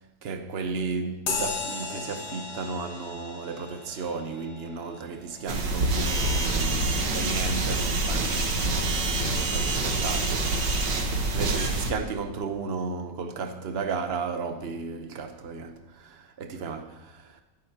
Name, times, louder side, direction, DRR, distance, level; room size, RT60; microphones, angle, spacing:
voice 1, 0.2-17.4, right 4 dB, 40° right, 1.1 m, -34 dB
sound 1, 1.3-9.2, left 4 dB, 75° left, 2.1 m, -38 dB
sound 2, 5.5-11.9, right 2 dB, 80° right, 2.0 m, -26 dB
20.0 x 13.0 x 2.9 m
omnidirectional pair, 1.8 m